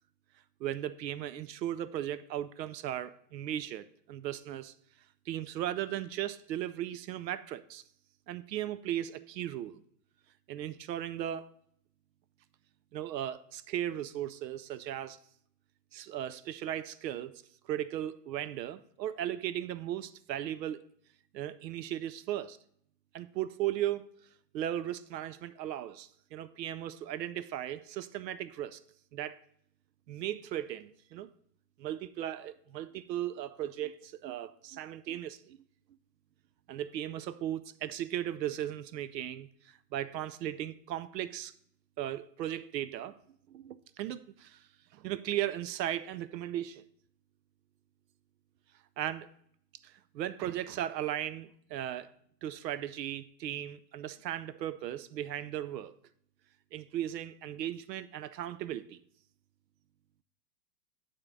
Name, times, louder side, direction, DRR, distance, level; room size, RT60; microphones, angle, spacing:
voice 1, 0.6-4.7 5.3-7.8 8.3-9.8 10.5-11.5 12.9-15.2 15.9-20.9 21.3-22.6 23.1-24.1 24.5-28.8 29.1-29.4 30.1-31.3 31.8-35.6 36.7-41.5 42.0-43.2 43.5-46.8 49.0-49.3 49.8-52.1 52.4-55.9 56.7-59.0, right 12 dB, 90° right, 0.6 m, -37 dB
9.0 x 3.8 x 4.6 m
hypercardioid pair, 170°, 49 cm